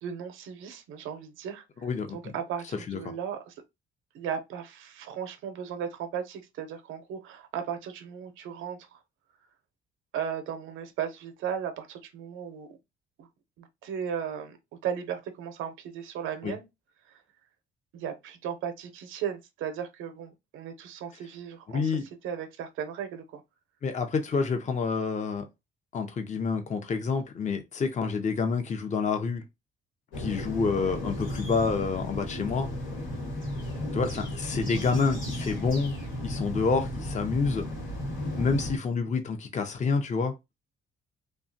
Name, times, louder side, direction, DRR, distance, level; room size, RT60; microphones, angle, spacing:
voice 1, 0.0-1.6 2.1-3.5 4.1-9.0 10.1-12.8 13.2-13.3 13.6-14.6 14.8-16.7 17.1-17.2 17.9-23.4 30.8-31.1, right 8 dB, 90° right, 0.6 m, -36 dB
voice 2, 1.8-2.2 2.9-3.0 16.4-16.5 21.7-22.0 23.8-25.5 25.9-29.4 30.2-32.7 33.9-35.9 36.2-37.7 38.4-40.4, left 4 dB, 35° left, 0.6 m, -28 dB
sound 1, 30.1-38.8, left 1 dB, 90° left, 1.4 m, -34 dB
2.8 x 2.3 x 2.6 m
cardioid pair, 90°, 20 cm